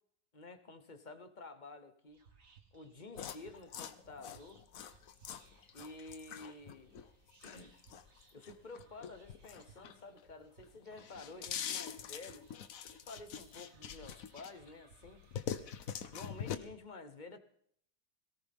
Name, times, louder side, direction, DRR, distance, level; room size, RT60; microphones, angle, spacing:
voice 1, 0.3-2.2 2.7-4.6 5.7-7.0 7.4-7.8 8.3-12.5 12.9-15.2 16.1-17.4, left 3 dB, 30° left, 8 dB, 1.1 m, -51 dB
Whispering, 2.1-16.7, right 5 dB, 55° right, 2.1 m, -65 dB
sound 1, 3.2-10.3 10.6-14.7 15.0-16.6, left 8 dB, 65° left, 1.2 m, -44 dB
18.0 x 18.0 x 3.6 m, 0.65 s
omnidirectional pair, 1.7 m